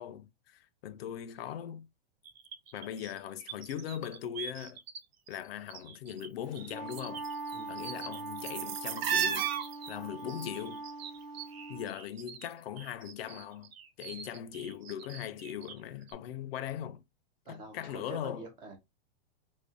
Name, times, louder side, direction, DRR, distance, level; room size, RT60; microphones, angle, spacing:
voice 1, 0.0-1.9 2.7-4.8 5.3-7.3 7.7-9.5 9.9-10.8 11.7-13.7 14.0-17.0 17.5-18.5, left 10 dB, 70° left, 0.5 m, -40 dB
sound 1, 2.3-5.0 5.3-6.3 6.5-12.5 12.8-15.8 16.1-16.2, right 8 dB, 75° right, 0.6 m, -38 dB
Wind instrument woodwind instrument, 6.5-11.9, right 3 dB, 40° right, 0.9 m, -42 dB
voice 2, 17.5-18.8, right 3 dB, 15° right, 0.3 m, -46 dB
2.5 x 2.1 x 2.4 m
supercardioid pair, 150°, 31 cm